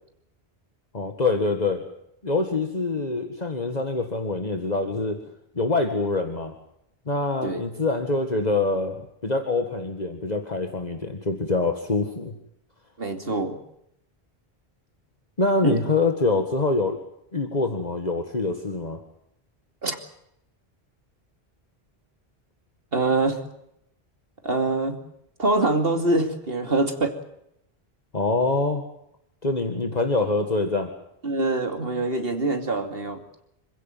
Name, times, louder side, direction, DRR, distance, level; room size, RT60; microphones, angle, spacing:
voice 1, 0.9-1.8 2.2-5.2 5.6-6.5 7.1-12.4 15.4-17.0 17.3-19.0 28.1-28.9 29.4-30.9, left 3 dB, 40° left, 5 dB, 2.0 m, -25 dB
voice 2, 13.0-13.6 15.6-15.8 19.8-20.0 22.9-23.4 24.4-25.0 25.4-27.1 31.2-33.2, right 2 dB, 65° right, 6 dB, 2.8 m, -24 dB
27.0 x 16.0 x 9.2 m, 0.77 s
omnidirectional pair, 1.0 m